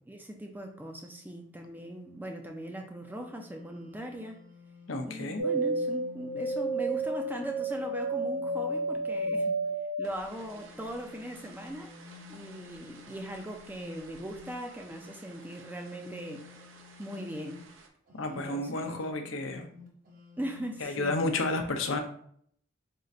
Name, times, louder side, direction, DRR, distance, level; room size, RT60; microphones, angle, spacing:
voice 1, 0.1-4.4 5.0-9.5 10.0-11.9 12.3-16.5 17.0-17.6 18.3-19.0 20.4-21.3, equal, 10° right, 3 dB, 0.4 m, -39 dB
sound 1, 3.0-9.7 10.3-17.7 18.1-20.8, left 6 dB, 45° right, 0.8 m, -52 dB
voice 2, 4.9-5.4 18.2-19.7 20.8-22.0, left 2 dB, 80° left, 5 dB, 0.6 m, -31 dB
sound 2, 5.4-14.8 15.0-15.9 16.3-17.2 17.6-17.7, right 2 dB, 80° right, 0.6 m, -33 dB
3.7 x 2.5 x 4.1 m, 0.62 s
head